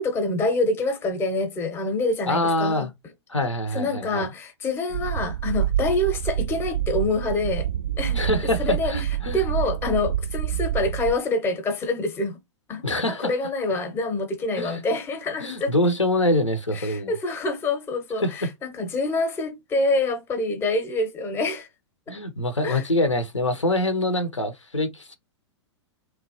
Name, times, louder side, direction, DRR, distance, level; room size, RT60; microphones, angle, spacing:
voice 1, 0.0-2.9 3.7-7.7 8.0-8.2 8.6-9.1 9.3-12.4 12.7-15.7 16.7-21.7 22.1-22.2 22.6-22.8, left 2 dB, 15° left, 0.6 m, -26 dB
voice 2, 2.3-2.9 3.3-4.2 8.2-9.4 12.8-13.3 14.6-14.8 15.4-17.1 18.2-18.5 22.1-25.2, left 1 dB, 85° left, 0.6 m, -25 dB
sound 1, 4.9-11.2, right 11 dB, 65° right, 0.4 m, -27 dB
2.9 x 2.1 x 2.7 m
figure-of-eight pair, 105°, 15 cm